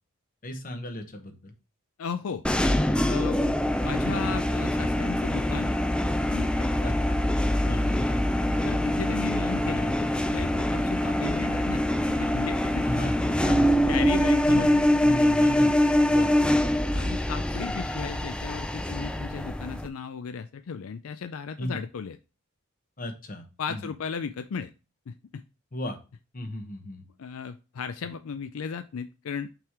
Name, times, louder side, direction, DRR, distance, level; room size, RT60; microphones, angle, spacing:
voice 1, 0.4-1.5 6.8-7.2 7.7-8.1 12.8-13.7 14.5-14.8 15.0-16.5 21.6-21.8 23.0-23.9 25.7-26.0 26.3-27.0, left 1 dB, 40° left, 6 dB, 1.0 m, -35 dB
voice 2, 2.0-2.4 3.1-3.4 3.8-5.7 6.3-6.7 8.6-11.8 12.1-12.9 13.9-15.2 16.9-22.2 23.6-24.7 25.1-25.4 27.2-29.5, left 6 dB, 75° left, 10 dB, 0.4 m, -35 dB
sound 1, 2.4-19.9, left 1 dB, 5° left, 0.3 m, -24 dB
5.8 x 3.7 x 4.6 m, 0.30 s
head